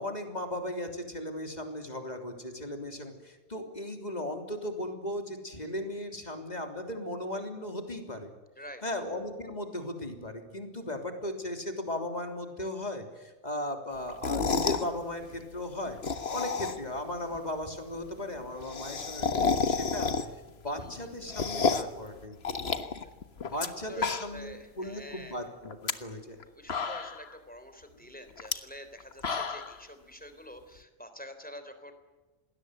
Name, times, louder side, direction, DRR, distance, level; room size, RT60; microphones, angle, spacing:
voice 1, 0.0-8.3 8.8-16.0 16.3-20.2 20.6-22.5 23.4-26.4, left 1 dB, 35° left, 4 dB, 3.5 m, -37 dB
sound 1, 14.1-14.9 15.9-17.0 17.3-17.4 17.6-17.7 17.9-18.0 18.3-20.5 20.9-22.0 22.4-23.7 23.9-24.5 24.9-25.0 25.7-25.9 26.4-26.5 26.7-27.3 28.4-28.5 29.0-29.8, left 5 dB, 60° left, 1.6 m, -30 dB
voice 2, 20.8-21.1 23.0-23.1 23.7-25.5 26.5-31.9, equal, 5° left, 8 dB, 3.5 m, -47 dB
27.0 x 20.5 x 8.1 m, 1.2 s
omnidirectional pair, 1.2 m